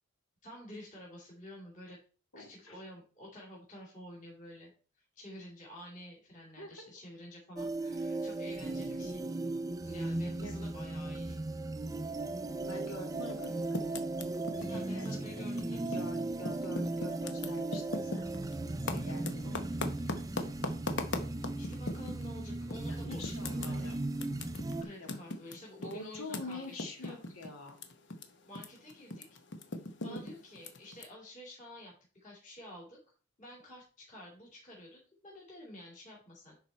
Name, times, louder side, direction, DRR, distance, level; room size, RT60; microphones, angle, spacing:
voice 1, 0.4-2.0 2.3-4.7 4.9-9.3 9.8-11.4 13.4-13.6 14.7-16.1 18.9-19.6 20.4-20.6 21.1-24.0 24.8-26.7 27.0-27.2 28.5-29.2 30.0-33.0 33.4-36.6, left 1 dB, 35° left, -4 dB, 2.8 m, -50 dB
voice 2, 2.3-2.8 6.6-6.8 10.2-10.6 12.6-13.8 14.6-15.1 15.4-15.5 15.9-18.3 18.9-19.6 22.9-24.0 25.0-25.1 25.8-27.8 30.0-30.2, left 2 dB, 75° left, 2 dB, 2.3 m, -46 dB
sound 1, 7.6-24.8, right 2 dB, 15° right, 0.4 m, -37 dB
Typing, 13.3-16.1 16.4-22.3 22.7-22.8 23.1-28.2 28.5-31.0, left 2 dB, 55° left, 0.9 m, -39 dB
10.5 x 4.1 x 4.3 m, 0.38 s
head